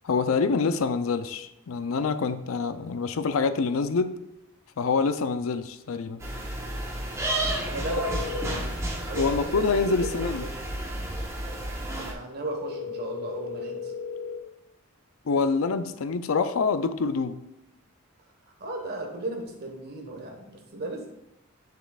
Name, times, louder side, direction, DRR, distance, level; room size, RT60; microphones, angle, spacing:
voice 1, 0.0-4.2 4.8-6.2 9.1-10.5 15.3-17.4, left 4 dB, 70° left, 11 dB, 0.5 m, -26 dB
sound 1, 6.2-12.1, right 1 dB, 15° right, 1.2 m, -32 dB
voice 2, 7.6-9.7 10.0-10.5 11.9-13.9 18.6-21.1, right 1 dB, 50° right, 2 dB, 1.3 m, -35 dB
sound 2, 8.0-8.6 12.5-14.4, left 5 dB, 90° right, 0.8 m, -35 dB
8.6 x 6.6 x 2.4 m, 0.89 s
head